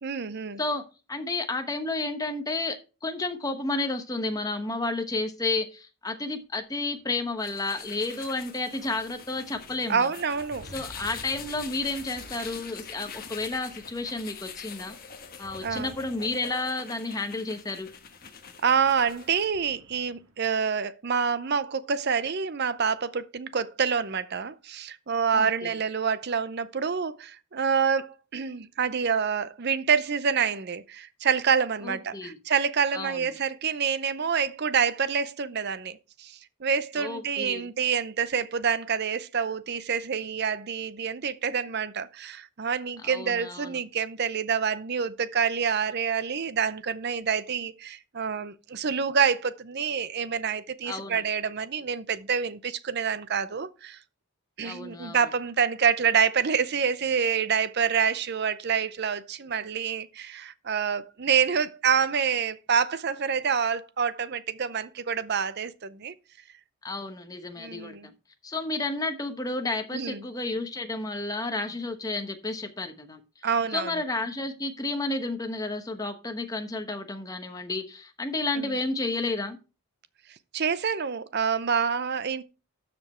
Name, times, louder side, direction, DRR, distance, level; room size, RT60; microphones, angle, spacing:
voice 1, 0.0-0.6 9.9-10.7 15.6-15.9 18.6-54.0 54.6-66.1 67.6-68.1 69.9-70.2 73.4-73.9 78.6-78.8 80.5-82.4, right 6 dB, 50° right, 0.6 m, -27 dB
voice 2, 0.6-2.8 3.0-10.1 10.7-15.0 15.4-17.9 25.3-25.7 31.8-32.4 32.9-33.3 37.0-37.6 43.1-43.7 50.9-51.2 54.6-55.2 66.8-68.0 68.4-73.2 73.7-79.6, left 2 dB, 15° left, 1.0 m, -31 dB
sound 1, 6.9-20.5, equal, 85° right, 1.9 m, -52 dB
sound 2, 7.4-19.5, left 7 dB, 40° left, 1.3 m, -44 dB
12.5 x 5.2 x 4.3 m
head